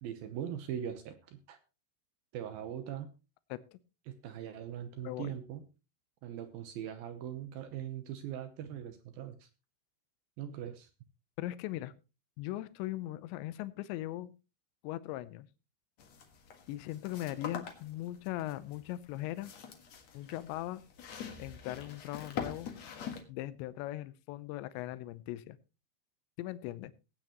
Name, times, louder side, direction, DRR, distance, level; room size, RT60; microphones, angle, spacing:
voice 1, 0.0-1.6 2.3-3.1 4.1-5.6 6.2-9.5 10.4-10.9, right 10 dB, 75° right, 9 dB, 2.1 m, -41 dB
voice 2, 5.0-5.4 11.4-11.9 12.4-14.3 14.8-15.5 16.7-19.5 20.1-20.8 21.4-22.7 23.3-25.6 26.4-26.9, left 15 dB, 80° left, 15 dB, 2.9 m, -39 dB
sound 1, 16.0-23.2, left 7 dB, 60° left, 1.9 m, -45 dB
19.5 x 8.9 x 3.0 m, 0.30 s
omnidirectional pair, 5.4 m